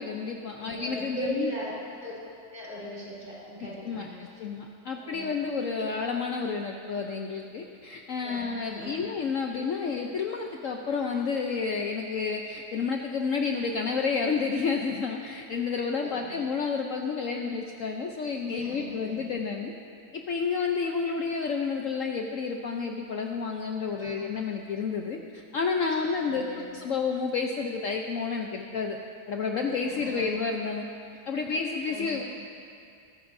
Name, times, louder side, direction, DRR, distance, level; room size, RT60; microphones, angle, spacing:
voice 1, 0.0-1.5 3.8-19.7 20.1-29.0 29.3-30.8 31.3-32.3, left 5 dB, 60° left, 2 dB, 1.0 m, -30 dB
voice 2, 0.6-1.7 2.0-4.2 5.0-5.3 8.2-9.0 16.2-16.4 18.5-19.3 23.9-24.2 26.2-26.6 29.8-30.3 31.8-32.1, equal, 30° right, -7 dB, 4.5 m, -39 dB
22.0 x 14.0 x 2.6 m, 2.4 s
omnidirectional pair, 1.8 m